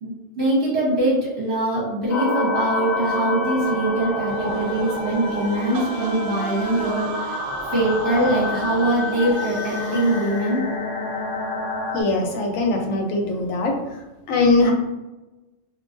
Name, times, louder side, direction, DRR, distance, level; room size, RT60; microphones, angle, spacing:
voice 1, 0.0-7.4 7.7-10.6, right 1 dB, 60° right, -6 dB, 1.2 m, -23 dB
sound 1, 2.1-12.0, left 1 dB, 55° left, 0.8 m, -29 dB
sound 2, 2.5-12.9, equal, 5° right, 1.0 m, -36 dB
sound 3, 4.3-10.6, right 4 dB, 80° right, 1.0 m, -34 dB
voice 2, 11.9-13.7 14.3-14.7, left 2 dB, 85° left, 2 dB, 1.0 m, -21 dB
3.7 x 2.6 x 2.5 m, 1.1 s
omnidirectional pair, 1.3 m